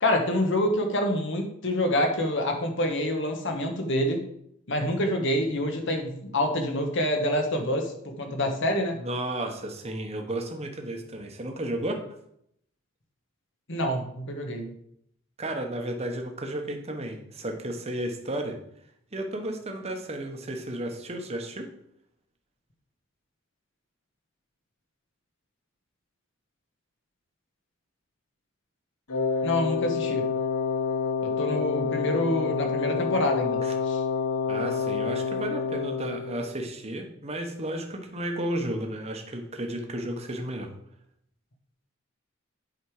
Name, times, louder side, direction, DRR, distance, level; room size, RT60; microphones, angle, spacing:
voice 1, 0.0-4.2 4.7-7.9 8.2-9.0 13.7-14.8 29.4-30.3 31.2-34.0, left 1 dB, 60° left, 4 dB, 1.3 m, -27 dB
voice 2, 8.9-12.0 15.4-18.6 19.1-21.7 33.6-33.7 34.5-40.7, right 1 dB, 30° right, 3 dB, 1.1 m, -33 dB
Wind instrument woodwind instrument, 29.1-36.4, left 5 dB, 90° left, 1.1 m, -28 dB
8.4 x 5.0 x 4.8 m, 0.72 s
head